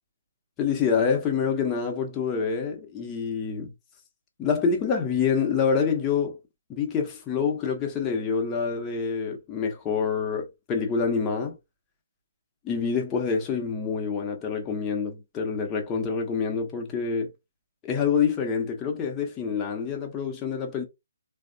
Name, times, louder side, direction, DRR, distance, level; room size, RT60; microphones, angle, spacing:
voice 1, 0.6-3.7 4.4-6.4 6.7-11.6 12.6-17.3 17.8-20.9, left 6 dB, 15° left, 0.7 m, -26 dB
3.2 x 2.0 x 2.6 m
figure-of-eight pair, 140°, 0 cm